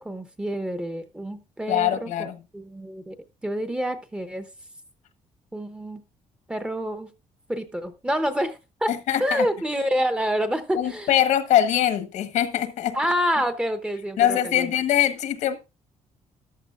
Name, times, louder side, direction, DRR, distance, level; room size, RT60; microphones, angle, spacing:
voice 1, 0.0-2.3 2.5-3.2 3.4-4.5 5.5-6.0 6.5-7.1 7.5-8.9 9.2-11.1 12.9-14.7, equal, 10° right, 0.8 m, -27 dB
voice 2, 1.7-2.4 8.9-9.4 10.7-13.0 14.2-15.6, left 11 dB, 80° left, 1.3 m, -22 dB
14.0 x 12.0 x 2.5 m
cardioid pair, 175°, 12 cm